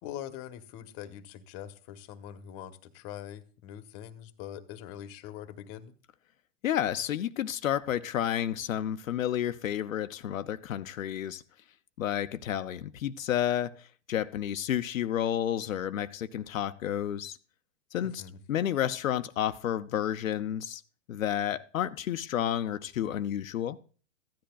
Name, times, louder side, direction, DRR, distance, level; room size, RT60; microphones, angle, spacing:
voice 1, 0.0-5.9 17.9-18.4, left 10 dB, 35° left, 1.1 m, -43 dB
voice 2, 6.6-11.4 12.0-17.4 17.9-18.2 18.5-20.8 21.1-23.8, left 10 dB, 85° left, 0.7 m, -31 dB
15.0 x 10.5 x 2.3 m
hypercardioid pair, 130°, 39 cm